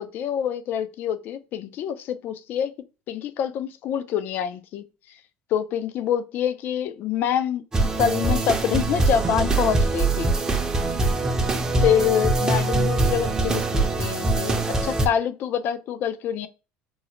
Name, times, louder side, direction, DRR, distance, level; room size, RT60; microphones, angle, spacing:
voice 1, 0.0-2.7 3.1-4.8 5.5-7.6 8.0-10.3 11.8-16.5, left 9 dB, 55° left, 0.4 m, -26 dB
sound 1, 7.7-15.1, right 2 dB, 15° right, 0.5 m, -23 dB
3.7 x 2.0 x 2.9 m
cardioid pair, 120°, 4 cm